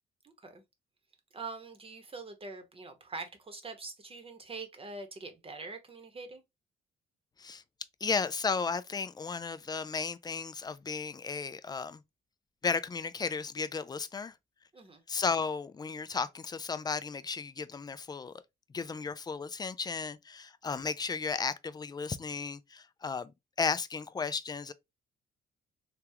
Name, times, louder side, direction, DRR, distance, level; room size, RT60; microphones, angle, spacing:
voice 1, 0.2-0.6 1.3-6.4 14.7-15.0, right 3 dB, 30° right, 0.9 m, -44 dB
voice 2, 8.0-12.0 12.6-14.3 15.1-18.3 18.7-23.3 23.6-24.7, left 5 dB, 20° left, 0.3 m, -34 dB
3.5 x 2.3 x 2.7 m
cardioid pair, 90°, 20 cm